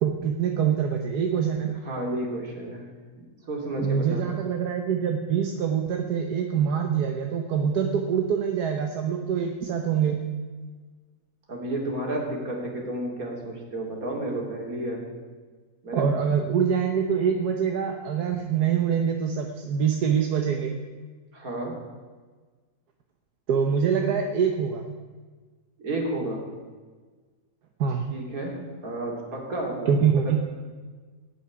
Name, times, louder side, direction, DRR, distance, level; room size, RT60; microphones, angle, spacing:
voice 1, 0.0-1.7 3.8-10.2 15.9-20.7 23.5-24.8 27.8-28.0 29.9-30.4, right 7 dB, 85° right, 4 dB, 1.5 m, -25 dB
voice 2, 1.8-2.8 3.2-4.2 11.5-15.0 15.8-16.0 16.6-16.7 21.3-21.7 25.8-26.4 28.1-29.9, right 1 dB, 65° right, 0 dB, 3.3 m, -31 dB
17.5 x 6.2 x 9.6 m, 1.4 s
omnidirectional pair, 1.6 m